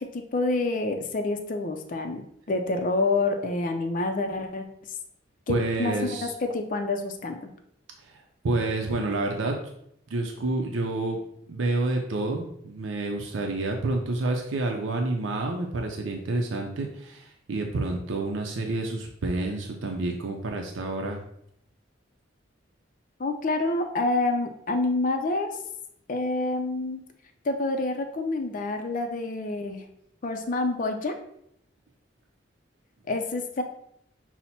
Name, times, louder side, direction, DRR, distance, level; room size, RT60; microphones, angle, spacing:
voice 1, 0.0-4.7 5.5-5.9 6.2-7.5 23.2-25.6 26.1-27.0 27.4-29.8 30.2-31.2 33.1-33.6, left 2 dB, 45° left, 6 dB, 0.4 m, -27 dB
voice 2, 5.5-6.3 8.0-9.7 10.1-11.2 11.5-21.2, right 2 dB, 85° right, 2 dB, 0.5 m, -29 dB
5.7 x 2.1 x 4.1 m, 0.73 s
head